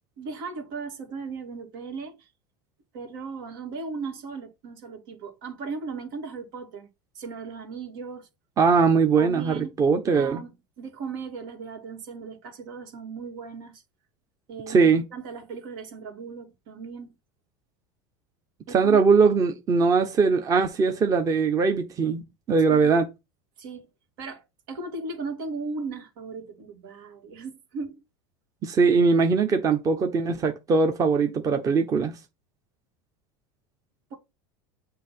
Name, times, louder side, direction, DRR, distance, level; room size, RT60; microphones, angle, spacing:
voice 1, 0.2-2.3 2.9-6.9 7.1-8.3 9.2-9.8 10.1-13.8 14.5-17.1 18.7-19.0 22.7-22.9 23.6-23.9 24.2-28.0, right 4 dB, 75° right, 2.1 m, -37 dB
voice 2, 8.6-10.4 14.7-15.0 18.7-22.2 22.5-23.1 28.6-32.1, right 5 dB, 30° right, 1.0 m, -21 dB
7.5 x 2.9 x 5.8 m
supercardioid pair, 120°, 12 cm